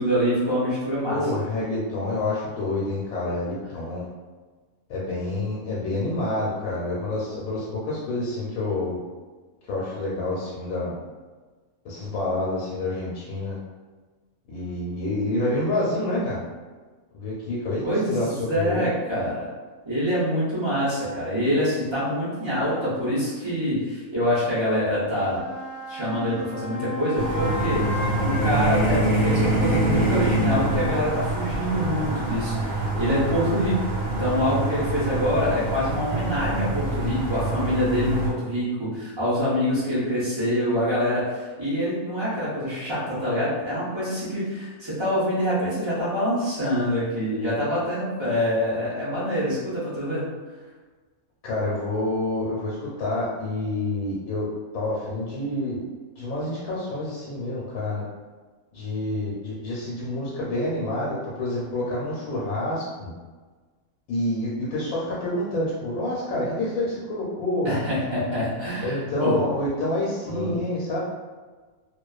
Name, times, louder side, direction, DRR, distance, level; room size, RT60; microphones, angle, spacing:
voice 1, 0.0-1.2 17.8-19.5 19.9-25.4 25.9-33.8 34.0-50.3 67.6-69.4 70.3-70.6, equal, 35° right, -10 dB, 0.4 m, -25 dB
voice 2, 1.1-4.1 4.9-9.0 9.6-11.0 11.8-13.6 14.5-16.4 17.1-18.9 51.4-54.4 54.7-55.8 56.2-58.0 58.7-63.1 64.1-67.7 68.8-71.0, left 2 dB, 85° left, -6 dB, 1.1 m, -28 dB
sound 1, 25.1-31.3, left 2 dB, 55° right, 0.9 m, -35 dB
sound 2, 27.2-38.3, right 2 dB, 90° right, 1.3 m, -25 dB
2.4 x 2.2 x 2.3 m, 1.4 s
omnidirectional pair, 1.5 m